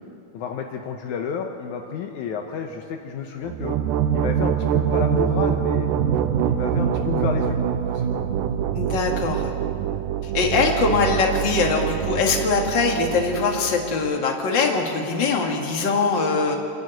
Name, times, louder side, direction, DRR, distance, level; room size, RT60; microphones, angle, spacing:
voice 1, 0.3-3.8 4.1-5.9 6.4-7.6 7.9-8.2, left 7 dB, 75° left, 4 dB, 2.3 m, -30 dB
sound 1, 3.4-14.1, right 9 dB, 80° right, 2.3 m, -24 dB
voice 2, 8.7-9.5 10.3-16.6, left 4 dB, 40° left, 1 dB, 2.4 m, -22 dB
29.0 x 11.0 x 9.3 m, 2.7 s
omnidirectional pair, 3.7 m